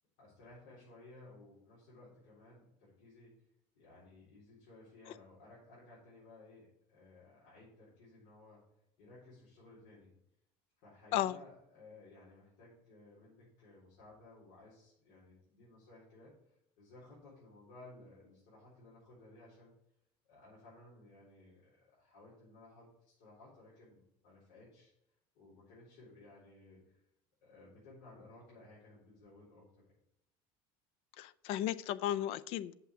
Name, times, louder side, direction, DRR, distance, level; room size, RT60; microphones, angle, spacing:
voice 1, 0.2-3.4 3.7-8.6 9.0-10.1 10.8-19.7 20.3-24.9 25.3-27.0 27.4-29.7, left 2 dB, 70° left, -7 dB, 4.0 m, -58 dB
voice 2, 31.2-32.7, left 12 dB, 50° left, 18 dB, 0.4 m, -34 dB
6.8 x 5.9 x 7.1 m, 0.80 s
cardioid pair, 160°, 13 cm